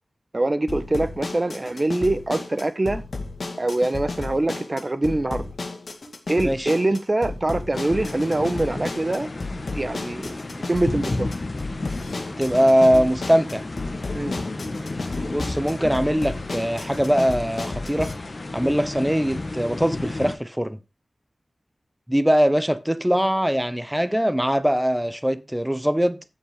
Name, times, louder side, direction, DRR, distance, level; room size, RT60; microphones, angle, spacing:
voice 1, 0.3-3.0 3.6-5.5 6.3-9.3 9.7-10.3 10.7-11.3 14.1-14.4, right 2 dB, 35° right, 1.2 m, -24 dB
sound 1, 0.7-18.1, left 3 dB, 75° left, 2.5 m, -34 dB
sound 2, 7.7-20.4, left 2 dB, 50° left, 1.6 m, -32 dB
voice 2, 12.4-13.7 15.3-18.2 18.5-20.8 22.1-26.2, equal, 5° right, 1.0 m, -21 dB
14.5 x 5.4 x 5.1 m
wide cardioid pair, 75°, 0 cm